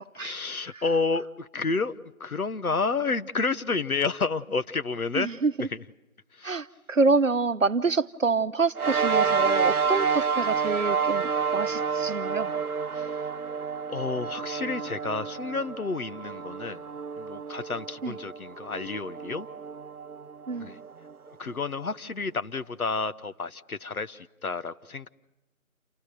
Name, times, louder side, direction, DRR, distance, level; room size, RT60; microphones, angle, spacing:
voice 1, 0.2-5.3 5.7-5.8 6.4-6.6 12.9-13.2 13.9-16.8 17.2-19.5 20.6-20.8 21.4-25.1, left 4 dB, 75° left, 1.1 m, -30 dB
voice 2, 5.1-5.7 6.4-12.5 18.0-18.2 20.5-20.8, right 4 dB, 60° right, 0.9 m, -27 dB
sound 1, 8.7-21.5, right 6 dB, 85° right, 1.0 m, -29 dB
28.5 x 23.5 x 6.8 m
figure-of-eight pair, 175°, 43 cm